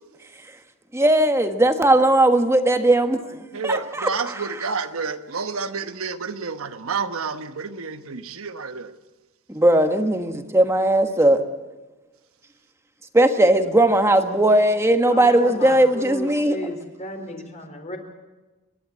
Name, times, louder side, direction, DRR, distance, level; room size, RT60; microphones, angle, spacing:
voice 1, 0.9-4.4 9.5-11.4 13.1-16.6, right 1 dB, 15° right, 1.3 m, -18 dB
voice 2, 3.5-8.9, right 4 dB, 80° right, 1.1 m, -29 dB
voice 3, 15.1-18.0, left 1 dB, 35° left, 3.9 m, -34 dB
29.5 x 11.5 x 8.4 m
head